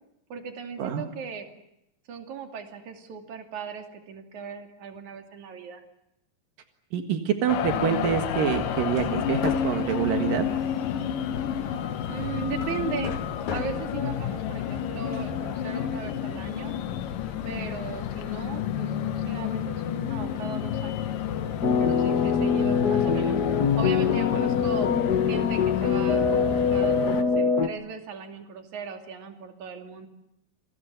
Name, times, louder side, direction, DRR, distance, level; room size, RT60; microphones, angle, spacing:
voice 1, 0.3-1.5 2.1-5.8 12.1-13.1 13.5-16.8 17.5-21.1 21.8-24.9 25.3-30.1, right 6 dB, 60° right, 5 dB, 4.0 m, -37 dB
voice 2, 6.9-10.5, right 8 dB, 85° right, 6 dB, 3.4 m, -26 dB
sound 1, 7.5-27.2, left 9 dB, 80° left, 3.0 m, -30 dB
Hammer, 7.7-15.6, left 6 dB, 60° left, 3.2 m, -39 dB
sound 2, 21.6-27.7, left 6 dB, 45° left, 1.3 m, -23 dB
28.5 x 22.5 x 8.1 m, 0.83 s
omnidirectional pair, 3.8 m